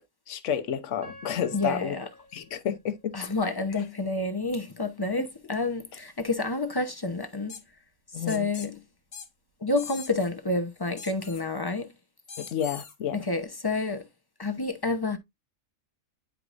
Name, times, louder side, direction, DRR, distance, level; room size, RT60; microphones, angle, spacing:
voice 1, 0.3-1.9 2.3-3.3 8.1-8.5 12.4-13.2, left 9 dB, 65° left, 1.1 m, -30 dB
Piano, 1.0-4.0 4.6-4.7 5.3-5.6, left 1 dB, 70° right, 3.4 m, -51 dB
voice 2, 1.5-2.1 3.1-7.6 8.1-8.8 9.6-11.9 13.1-14.1 14.4-15.2, left 2 dB, 25° left, 0.6 m, -29 dB
sound 1, 7.5-7.6 8.3-8.7 9.1-9.3 9.8-10.3 11.0-11.4 12.3-12.9, left 6 dB, 45° left, 1.3 m, -42 dB
10.5 x 4.7 x 2.5 m
omnidirectional pair, 1.4 m